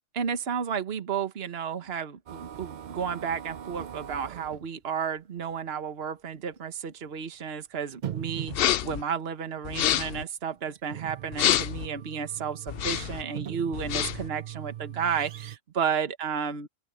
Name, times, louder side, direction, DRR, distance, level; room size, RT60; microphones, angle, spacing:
voice 1, 0.1-16.7, right 7 dB, 50° right, 1.4 m, -32 dB
sound 1, 2.3-4.7 5.5-5.6 6.0-6.1 7.1-7.2 7.9-9.0 10.5-15.6, right 10 dB, 70° right, 0.4 m, -40 dB
sound 2, 8.5-9.0 9.6-10.2 11.3-11.9 12.7-13.2 13.7-14.3, left 12 dB, 70° left, 0.5 m, -27 dB
open air
omnidirectional pair, 1.4 m